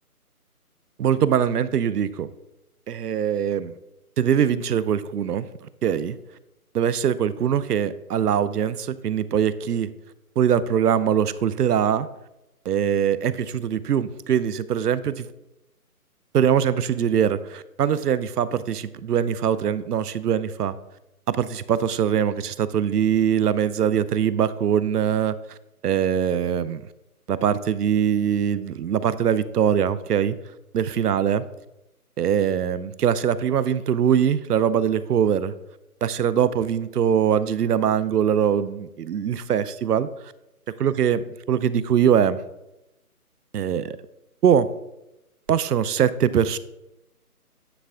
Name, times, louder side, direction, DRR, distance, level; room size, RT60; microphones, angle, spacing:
voice 1, 1.0-2.3 2.9-3.7 4.2-6.2 6.7-9.9 10.4-12.1 12.7-15.3 16.3-20.8 21.3-25.4 25.8-26.8 27.3-30.4 30.7-31.4 32.2-35.5 36.0-40.1 40.8-42.4 43.5-44.0 44.4-44.7 45.5-46.6, right 8 dB, 85° right, 16 dB, 0.6 m, -22 dB
9.3 x 3.3 x 3.7 m, 0.91 s
hypercardioid pair, 170°, 46 cm